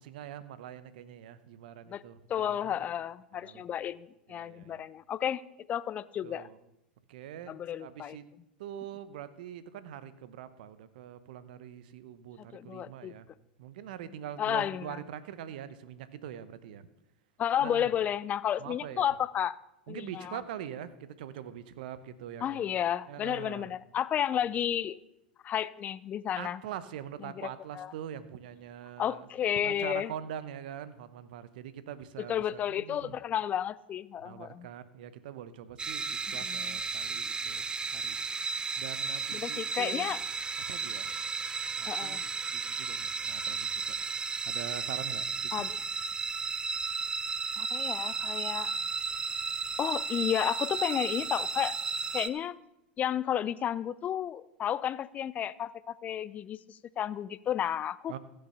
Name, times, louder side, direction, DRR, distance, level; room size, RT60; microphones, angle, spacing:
voice 1, 0.0-2.7 3.4-3.8 4.3-4.8 6.2-6.6 7.1-8.2 8.6-13.3 13.6-16.8 17.6-17.9 18.6-19.1 19.9-22.7 23.1-23.7 26.3-29.3 29.6-33.2 34.2-37.7 37.9-38.2 38.8-40.1 40.7-41.1 41.8-42.2 42.5-43.9 44.5-45.7 58.1-58.2, right 10 dB, 65° right, 14 dB, 0.9 m, -43 dB
voice 2, 2.3-5.4 5.7-6.5 7.5-8.2 12.5-13.2 14.4-15.0 17.4-19.6 19.9-20.4 22.4-25.0 25.4-26.6 27.2-27.9 29.0-30.1 32.2-34.7 36.3-36.8 39.3-40.2 41.9-42.2 45.5-45.8 47.6-48.7 49.8-51.8 52.1-52.6 53.0-58.2, left 10 dB, 30° left, 19 dB, 0.5 m, -32 dB
sound 1, 35.8-52.3, right 4 dB, 15° right, 0.6 m, -34 dB
15.5 x 6.9 x 5.6 m, 0.87 s
hypercardioid pair, 95°, 5 cm